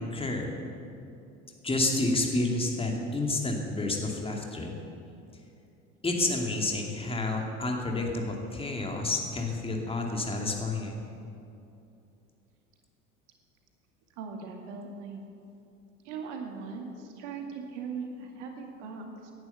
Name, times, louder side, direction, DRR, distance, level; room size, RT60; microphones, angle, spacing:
voice 1, 0.1-0.5 1.6-4.8 6.0-11.0, left 2 dB, 15° left, 1 dB, 2.6 m, -29 dB
voice 2, 14.2-15.2 16.0-19.3, right 5 dB, 60° right, 3 dB, 2.2 m, -39 dB
17.0 x 11.0 x 7.1 m, 2.7 s
figure-of-eight pair, 70°, 40 cm